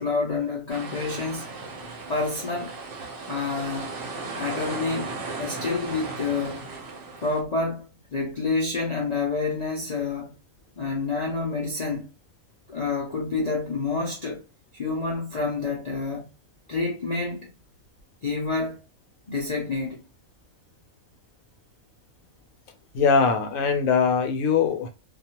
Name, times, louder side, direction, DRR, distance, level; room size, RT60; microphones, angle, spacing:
voice 1, 0.0-1.5 1.8-2.7 3.3-3.9 4.4-5.1 5.4-6.7 7.2-10.4 10.8-12.1 12.7-14.4 14.7-16.3 16.7-17.5 18.2-18.8 19.3-20.0, left 4 dB, 55° left, 0.4 m, -28 dB
sound 1, 0.7-7.4, right 3 dB, 50° right, 0.8 m, -36 dB
voice 2, 22.9-24.9, left 6 dB, 70° left, 1.0 m, -21 dB
2.4 x 2.3 x 2.8 m
omnidirectional pair, 1.5 m